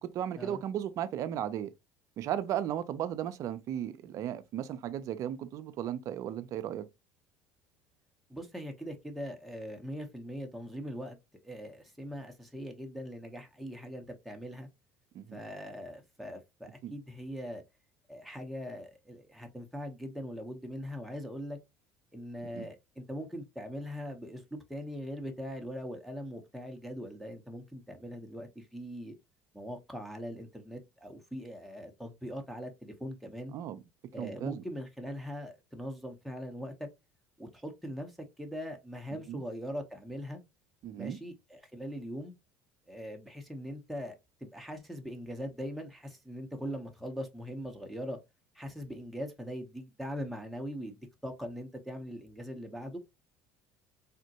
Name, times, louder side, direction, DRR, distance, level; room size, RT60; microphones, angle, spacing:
voice 1, 0.0-1.7 2.2-6.9 15.1-15.4 16.8-16.9 22.5-22.7 33.5-33.8 34.2-34.6 39.3-39.4 40.8-41.2, right 10 dB, 55° right, 0.4 m, -35 dB
voice 2, 8.3-11.2 11.4-14.7 15.3-17.6 18.1-21.6 22.1-29.1 29.5-33.5 34.1-36.9 37.4-40.4 40.9-42.3 42.9-44.2 44.4-48.2 48.5-53.0, equal, ahead, 0.7 m, -41 dB
3.6 x 2.1 x 2.7 m
supercardioid pair, 90°, 7 cm